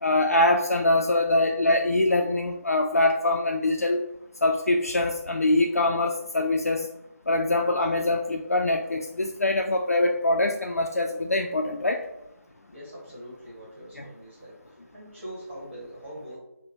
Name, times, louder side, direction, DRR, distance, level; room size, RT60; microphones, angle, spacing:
voice 1, 0.0-4.0 4.4-6.9 7.3-12.0 14.0-14.1, left 2 dB, 65° left, 2 dB, 0.4 m, -23 dB
voice 2, 12.7-14.5 14.9-16.4, equal, 30° right, -7 dB, 1.3 m, -42 dB
4.9 x 2.1 x 2.9 m, 0.87 s
figure-of-eight pair, 160°, 9 cm